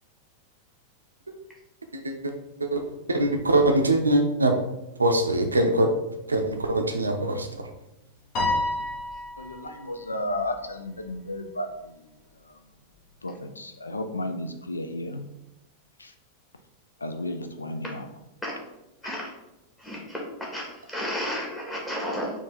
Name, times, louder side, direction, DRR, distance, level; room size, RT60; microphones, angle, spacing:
voice 1, 2.6-4.6 5.0-5.9 6.3-7.5, right 1 dB, 80° right, 5 dB, 0.5 m, -23 dB
Piano, 8.3-9.9, left 2 dB, 40° left, 1.1 m, -28 dB
voice 2, 9.4-11.9 13.2-15.2 16.0-16.1 17.0-18.1, left 1 dB, 80° left, 6 dB, 0.4 m, -33 dB
voice 3, 19.8-22.3, equal, 10° left, -4 dB, 1.6 m, -32 dB
4.4 x 2.8 x 4.1 m, 0.93 s
figure-of-eight pair, 90°, 0 cm